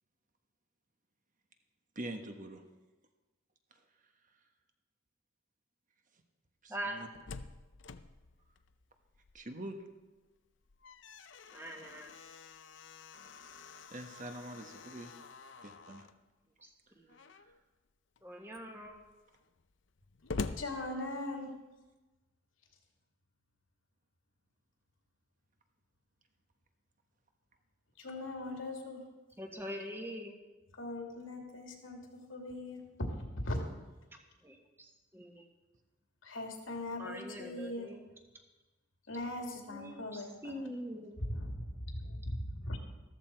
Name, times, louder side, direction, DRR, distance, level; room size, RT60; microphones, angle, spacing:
voice 1, 1.9-2.6 6.6-7.1 9.3-9.7 13.9-15.1 15.6-16.1 17.3-17.5, right 1 dB, 40° right, 5 dB, 1.2 m, -44 dB
Slam, 6.8-9.6 10.0-10.1 10.5-16.2 17.1-17.6 18.2-18.3 18.5-21.6, left 3 dB, 65° left, 0.6 m, -46 dB
voice 2, 11.5-12.1 16.6-16.7 17.0-17.2 18.2-19.0 29.4-30.4 34.4-35.5 37.0-38.1 39.7-41.1, equal, 10° right, 2 dB, 1.4 m, -43 dB
voice 3, 20.6-21.6 28.0-29.0 30.8-33.6 36.2-37.9 39.1-40.6 41.2-42.8, left 1 dB, 85° left, 2 dB, 2.5 m, -40 dB
14.0 x 13.5 x 4.5 m, 1.2 s
head